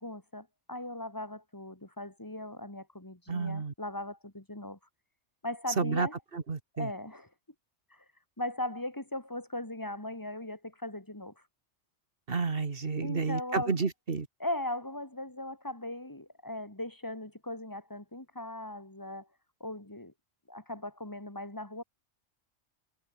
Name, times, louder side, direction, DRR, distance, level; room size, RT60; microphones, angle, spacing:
voice 1, 0.0-4.8 5.4-6.2 6.8-7.3 7.9-8.0 8.4-11.4 13.0-13.8 14.4-19.3 19.6-20.1 20.5-21.8, left 1 dB, 15° left, 2.7 m, -38 dB
voice 2, 3.3-3.7 5.8-6.1 6.3-6.9 12.3-14.3, right 4 dB, 55° right, 1.8 m, -31 dB
omnidirectional pair, 1.2 m